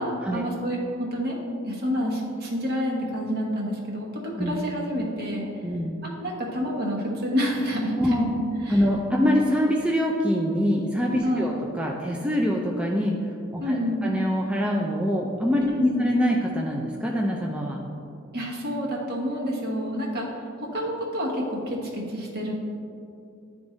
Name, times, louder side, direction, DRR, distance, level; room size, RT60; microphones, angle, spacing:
voice 1, 0.0-1.4 1.6-5.5 6.0-8.4 8.7-8.8 9.2-9.4 11.2-11.5 13.6-14.1 15.7-16.0 18.3-22.5, equal, 50° right, -2 dB, 1.1 m, -28 dB
voice 2, 5.6-5.9 8.0-8.3 8.7-13.2 13.5-17.8, equal, 5° right, -2 dB, 0.4 m, -24 dB
10.5 x 3.5 x 3.1 m, 2.6 s
head